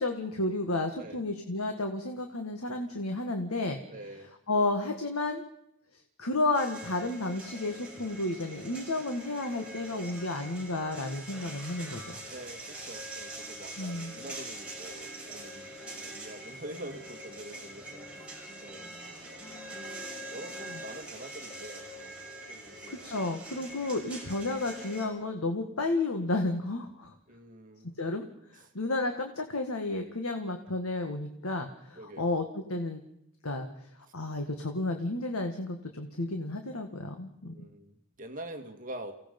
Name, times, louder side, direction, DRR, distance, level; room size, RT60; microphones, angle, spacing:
voice 1, 0.0-3.8 4.5-5.4 6.2-12.2 13.8-14.1 22.9-27.1 28.0-28.3 28.8-33.0 33.4-33.7 34.1-37.5, left 2 dB, 80° left, 5 dB, 1.8 m, -32 dB
voice 2, 3.9-4.3 12.3-15.7 16.0-19.4 19.9-22.2 22.5-23.1 27.3-27.9 28.5-28.7 32.0-32.3 37.4-39.1, right 1 dB, 40° right, 5 dB, 1.9 m, -46 dB
sound 1, 6.5-25.1, right 1 dB, 5° right, 6.2 m, -44 dB
29.0 x 17.0 x 5.4 m, 0.79 s
head